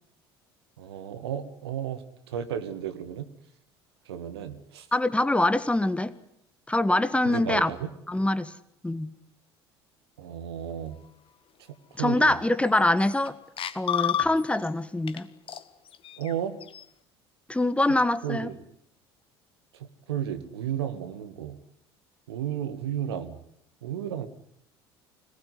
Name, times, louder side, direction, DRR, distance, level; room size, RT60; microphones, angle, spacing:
voice 1, 0.8-3.3 4.1-4.9 7.3-7.9 10.2-11.0 12.0-12.3 14.2-14.3 16.2-16.6 18.2-18.6 19.8-21.6 22.3-23.4 23.8-24.3, right 9 dB, 75° right, 10 dB, 2.1 m, -33 dB
voice 2, 4.9-6.1 6.7-7.7 8.1-8.5 8.8-9.1 12.0-13.4 13.7-15.3 17.5-18.5, left 2 dB, 10° left, 14 dB, 1.5 m, -24 dB
sound 1, 12.3-12.4 12.7-13.3 13.6-14.7 15.1-15.2 15.5-16.8, left 10 dB, 40° left, 1.6 m, -31 dB
25.5 x 19.5 x 9.7 m, 0.72 s
figure-of-eight pair, 60°, 14 cm